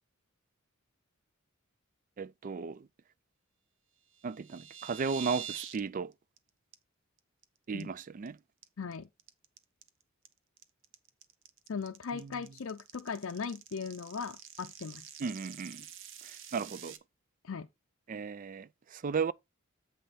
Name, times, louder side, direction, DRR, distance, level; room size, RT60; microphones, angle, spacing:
voice 1, 2.2-2.9 4.2-6.1 7.7-8.4 12.1-12.3 15.2-15.8 16.2-16.9 18.1-19.3, right 5 dB, 40° right, 0.3 m, -35 dB
sound 1, 4.1-5.8 6.1-6.4 6.7-6.8 7.2-7.4 7.8-8.3 8.6-17.0, right 9 dB, 60° right, 0.8 m, -46 dB
voice 2, 8.8-9.1 11.7-15.1 17.4-17.7, left 5 dB, 65° left, 0.5 m, -38 dB
7.6 x 5.5 x 4.0 m
head